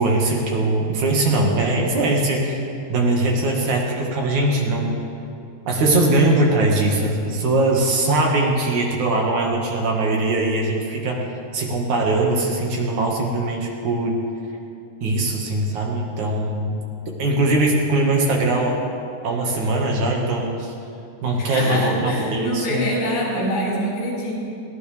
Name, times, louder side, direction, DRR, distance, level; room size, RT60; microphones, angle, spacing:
voice 1, 0.0-2.6 2.9-4.9 5.7-11.2 11.5-14.1 15.0-16.7 17.2-18.7 19.2-20.7 21.2-22.8, right 2 dB, 60° right, -1 dB, 3.0 m, -21 dB
voice 2, 21.4-24.3, equal, 85° left, -5 dB, 7.0 m, -25 dB
22.0 x 17.0 x 3.4 m, 2.6 s
omnidirectional pair, 4.1 m